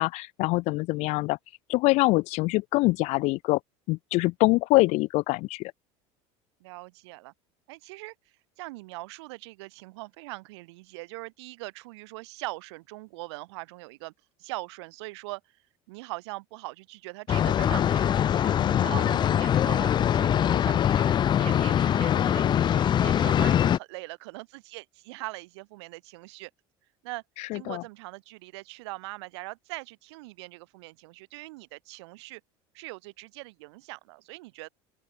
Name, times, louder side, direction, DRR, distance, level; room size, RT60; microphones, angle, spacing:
voice 1, 0.0-1.4 1.7-3.6 3.9-5.7 18.6-19.0 27.5-27.8, left 22 dB, 55° left, 0.5 m, -24 dB
voice 2, 6.6-7.3 7.7-8.1 8.6-14.1 14.4-15.4 15.9-26.5 27.0-27.2 27.5-32.4 32.7-34.7, right 23 dB, 85° right, 7.2 m, -41 dB
sound 1, 17.3-23.8, left 10 dB, 35° left, 1.2 m, -23 dB
open air
supercardioid pair, 135°, 14 cm